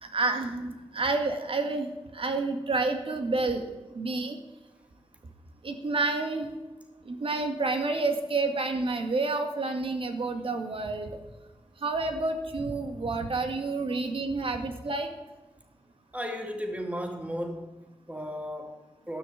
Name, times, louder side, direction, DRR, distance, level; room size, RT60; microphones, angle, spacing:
voice 1, 0.0-3.7 3.9-4.4 5.6-6.5 7.1-11.2 11.8-15.1, right 3 dB, 60° right, 2.0 m, -29 dB
voice 2, 16.1-19.2, equal, 15° right, 2.5 m, -35 dB
13.5 x 6.3 x 9.2 m
cardioid pair, 45°, 10 cm